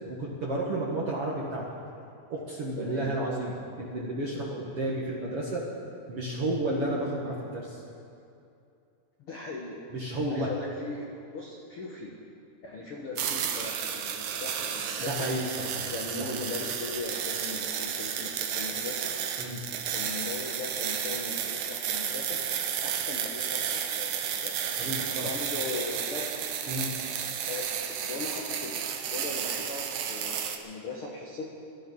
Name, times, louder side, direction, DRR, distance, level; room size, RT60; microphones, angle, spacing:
voice 1, 0.0-1.7 2.3-5.7 6.1-7.8 9.9-10.5 15.0-15.4 15.7-15.9 16.2-16.4 19.4-19.6 24.8-25.3 26.7-26.9, right 1 dB, 55° right, -4 dB, 1.7 m, -32 dB
voice 2, 2.8-3.1 9.2-11.1 11.3-12.1 12.6-15.3 15.9-19.1 19.9-22.4 22.8-26.4 27.5-27.7 28.0-28.8 29.0-31.5, left 3 dB, 65° left, -2 dB, 1.4 m, -39 dB
sound 1, 13.2-30.6, right 8 dB, 70° right, 2.0 m, -32 dB
18.5 x 13.5 x 5.5 m, 2.6 s
omnidirectional pair, 4.7 m